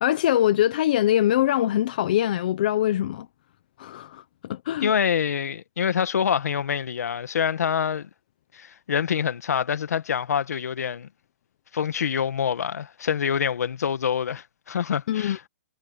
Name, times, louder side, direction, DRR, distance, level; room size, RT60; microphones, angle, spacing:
voice 1, 0.0-3.3 3.8-4.9 15.1-15.5, left 12 dB, 30° left, 0.7 m, -23 dB
voice 2, 4.8-8.1 8.5-11.1 11.7-15.4, left 7 dB, 60° left, 1.5 m, -26 dB
hypercardioid pair, 175°, 9 cm